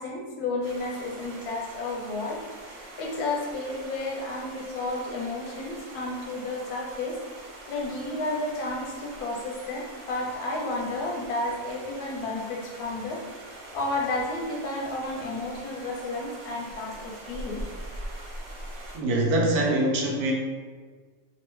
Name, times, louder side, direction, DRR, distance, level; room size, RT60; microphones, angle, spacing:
voice 1, 0.0-2.4 2.7-7.2 7.7-13.2 13.7-17.7, left 2 dB, 80° left, -1 dB, 1.1 m, -32 dB
sound 1, 0.6-19.0, right 1 dB, 60° right, 0.9 m, -43 dB
voice 2, 18.9-20.3, right 1 dB, 85° right, -1 dB, 1.2 m, -24 dB
3.2 x 2.9 x 3.0 m, 1.5 s
omnidirectional pair, 1.6 m